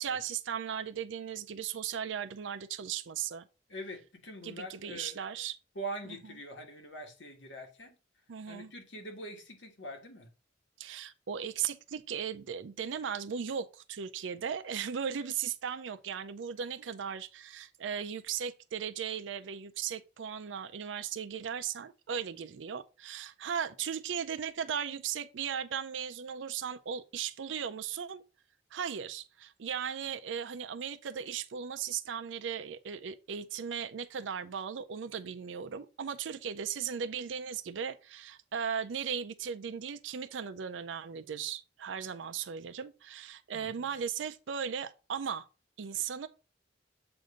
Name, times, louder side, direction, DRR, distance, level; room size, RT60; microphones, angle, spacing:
voice 1, 0.0-3.5 4.4-5.6 8.3-8.7 10.8-28.2 28.7-45.5 45.8-46.3, right 7 dB, 85° right, 0.5 m, -37 dB
voice 2, 3.7-5.2 5.7-7.9 8.5-10.3 43.5-43.9, right 1 dB, 75° left, 1.5 m, -43 dB
7.8 x 2.6 x 5.0 m
head